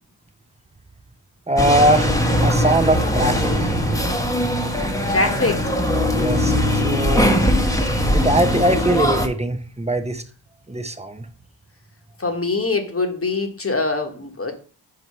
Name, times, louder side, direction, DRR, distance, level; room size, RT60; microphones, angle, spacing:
voice 1, 1.5-3.7 6.1-7.3 8.1-10.2 10.7-11.3, right 1 dB, 15° right, 9 dB, 0.8 m, -21 dB
sound 1, 1.6-9.3, equal, 5° left, 1.1 m, -20 dB
voice 2, 5.1-5.7 12.2-14.5, left 3 dB, 30° left, 5 dB, 1.2 m, -23 dB
4.8 x 4.7 x 5.5 m, 0.40 s
cardioid pair, 75°, 44 cm